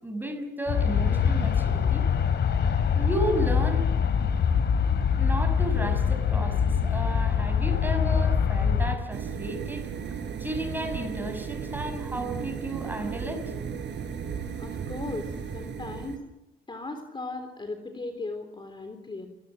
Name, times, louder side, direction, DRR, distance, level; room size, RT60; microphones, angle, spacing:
voice 1, 0.0-2.1 2.9-3.9 5.2-13.5, right 1 dB, 10° right, 7 dB, 6.2 m, -33 dB
Aircraft, 0.7-9.0, left 7 dB, 60° left, 2.7 m, -24 dB
sound 1, 9.1-16.2, right 7 dB, 60° right, 4.4 m, -35 dB
voice 2, 14.6-16.2 16.7-19.3, left 2 dB, 25° left, 7 dB, 3.5 m, -37 dB
29.0 x 19.0 x 7.6 m, 0.92 s
cardioid pair, 90°, 20 cm